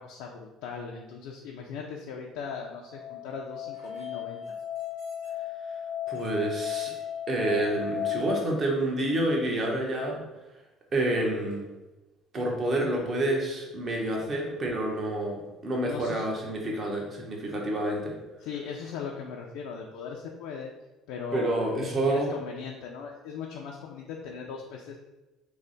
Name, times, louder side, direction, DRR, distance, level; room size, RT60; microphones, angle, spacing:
voice 1, 0.0-4.5 15.8-16.3 18.4-20.7 21.1-25.0, left 5 dB, 85° left, -1 dB, 0.3 m, -38 dB
Musical instrument, 2.5-8.2, left 10 dB, 80° right, 1.1 m, -35 dB
voice 2, 6.1-6.9 7.3-10.2 10.9-11.6 12.3-18.2 21.3-22.3, right 1 dB, 35° right, -1 dB, 0.8 m, -28 dB
3.3 x 2.1 x 3.8 m, 1.1 s
cardioid pair, 115°, 0 cm